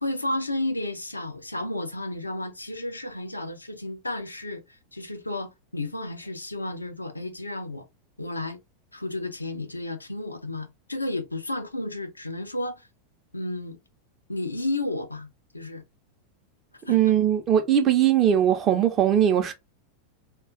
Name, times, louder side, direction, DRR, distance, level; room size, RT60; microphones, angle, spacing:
voice 1, 0.0-7.9 8.2-8.6 8.9-12.9 13.3-13.8 14.3-15.3 15.5-15.8 16.9-17.2, left 2 dB, 85° left, 0.4 m, -32 dB
voice 2, 16.9-19.5, right 10 dB, 35° right, 0.6 m, -20 dB
2.3 x 2.3 x 3.5 m
figure-of-eight pair, 90°, 0 cm